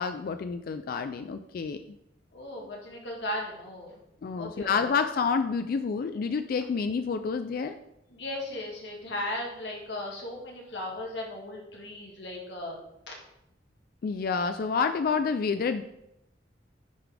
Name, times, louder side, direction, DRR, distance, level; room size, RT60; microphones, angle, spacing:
voice 1, 0.0-1.8 4.2-7.7 14.0-15.8, left 5 dB, 55° left, 9 dB, 0.3 m, -28 dB
voice 2, 2.3-4.0 4.4-4.7 8.1-12.8 13.1-13.2, left 1 dB, 85° left, -1 dB, 1.8 m, -36 dB
10.0 x 4.0 x 3.4 m, 0.82 s
head